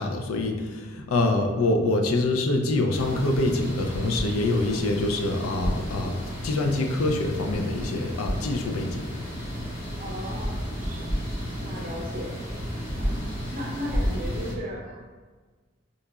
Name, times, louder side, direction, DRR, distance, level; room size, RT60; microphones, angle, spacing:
voice 1, 0.0-9.0, left 2 dB, 80° left, 4 dB, 0.4 m, -25 dB
sound 1, 2.9-14.5, equal, 65° left, 1.3 m, -32 dB
voice 2, 10.0-11.1 11.6-12.4 13.0-15.1, equal, 35° right, -2 dB, 0.5 m, -36 dB
3.7 x 2.9 x 2.3 m, 1.4 s
head